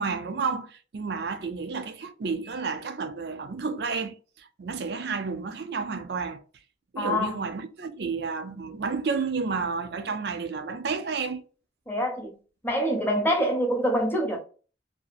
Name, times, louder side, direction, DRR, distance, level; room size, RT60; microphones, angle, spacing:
voice 1, 0.0-6.4 6.9-11.4, right 4 dB, 65° right, 0.4 m, -31 dB
voice 2, 7.0-7.4 11.9-12.3 12.6-14.4, equal, 10° left, 0.7 m, -25 dB
2.7 x 2.4 x 2.4 m
head